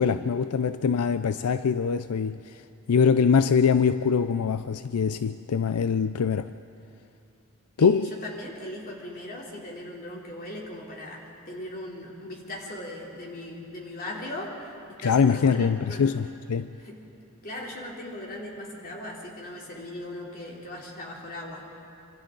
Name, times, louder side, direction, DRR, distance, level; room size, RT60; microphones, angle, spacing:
voice 1, 0.0-2.6 2.9-6.5 7.8-8.1 15.0-16.7, left 6 dB, 80° left, 12 dB, 0.4 m, -23 dB
voice 2, 7.8-16.0 16.8-17.1 17.4-21.8, left 1 dB, 40° left, -3 dB, 3.5 m, -39 dB
26.5 x 25.5 x 3.9 m, 2.6 s
head